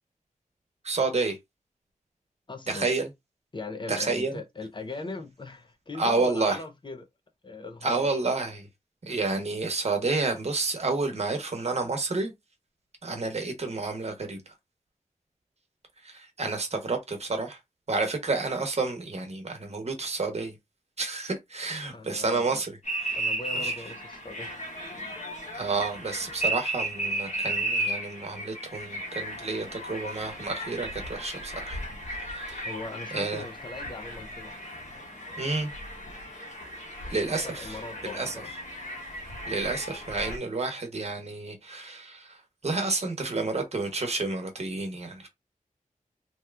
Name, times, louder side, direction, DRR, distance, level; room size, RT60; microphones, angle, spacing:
voice 1, 0.8-1.4 2.7-3.1 3.9-4.4 6.0-6.6 7.8-8.6 9.1-12.3 13.0-14.4 16.0-17.6 17.9-20.5 21.0-23.2 23.6-23.7 25.5-31.8 32.2-32.7 33.1-33.4 35.4-35.7 37.1-37.8 38.0-38.3 39.5-45.3, right 3 dB, 50° right, 0.9 m, -30 dB
voice 2, 2.5-2.9 3.5-7.1 7.4-8.1 21.9-22.6 23.2-24.7 32.6-34.5 37.4-38.5, left 3 dB, 35° left, 0.5 m, -39 dB
sound 1, 22.8-40.4, right 1 dB, 60° left, 1.2 m, -35 dB
2.9 x 2.3 x 3.3 m
wide cardioid pair, 105°, 14 cm